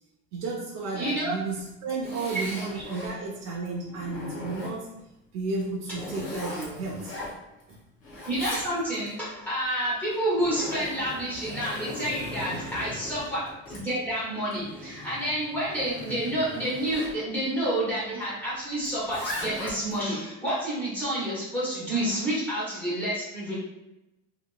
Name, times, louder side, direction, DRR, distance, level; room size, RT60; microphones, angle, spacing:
voice 1, 0.3-4.9 5.3-7.1 7.7-7.8 12.5-12.8, right 3 dB, 65° right, -5 dB, 0.6 m, -33 dB
voice 2, 0.9-1.3 8.3-13.4 13.7-23.6, right 1 dB, 5° left, -9 dB, 1.1 m, -29 dB
Zipper (clothing), 1.5-3.1 3.7-5.0 5.5-7.7 8.0-9.1 10.0-17.2 18.8-20.0, left 1 dB, 55° left, 1.0 m, -39 dB
2.8 x 2.8 x 2.2 m, 0.92 s
cardioid pair, 170°, 30 cm